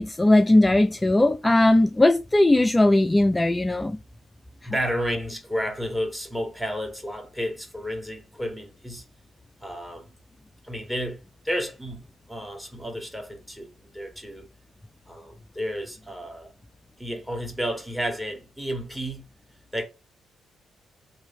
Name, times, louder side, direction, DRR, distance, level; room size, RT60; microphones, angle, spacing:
voice 1, 0.0-4.0, left 1 dB, 20° left, 0.3 m, -19 dB
voice 2, 4.6-9.0 9.6-10.1 10.6-14.5 15.1-16.5 17.0-19.3 19.7-19.8, equal, 10° right, 1.5 m, -32 dB
3.0 x 2.6 x 3.8 m
hypercardioid pair, 50°, 0 cm